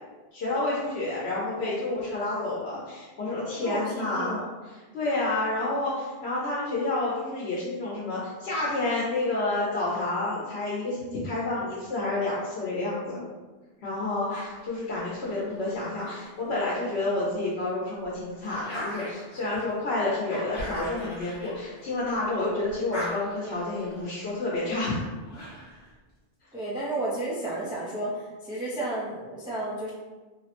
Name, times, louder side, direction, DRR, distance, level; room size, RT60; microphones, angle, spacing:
voice 1, 0.3-13.2 13.8-25.1, left 2 dB, 85° left, -7 dB, 0.9 m, -29 dB
voice 2, 3.6-4.5 26.5-29.9, right 2 dB, 5° right, -6 dB, 0.3 m, -32 dB
sound 1, 14.3-17.0 17.5-22.3 22.6-25.9, equal, 50° left, 1.0 m, -41 dB
3.2 x 2.0 x 2.8 m, 1.2 s
omnidirectional pair, 1.0 m